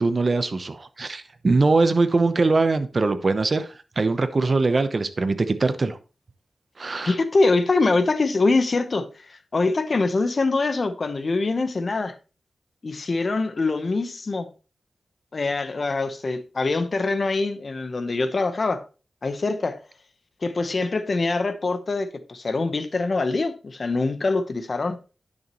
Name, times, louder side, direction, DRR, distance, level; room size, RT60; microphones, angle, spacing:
voice 1, 0.0-6.0 6.8-7.1, right 3 dB, 50° right, 0.8 m, -22 dB
voice 2, 7.0-12.2 12.8-14.5 15.3-18.8 19.2-19.8 20.4-25.0, left 3 dB, 55° left, 0.9 m, -24 dB
10.5 x 6.5 x 3.0 m
wide cardioid pair, 75°, 0 cm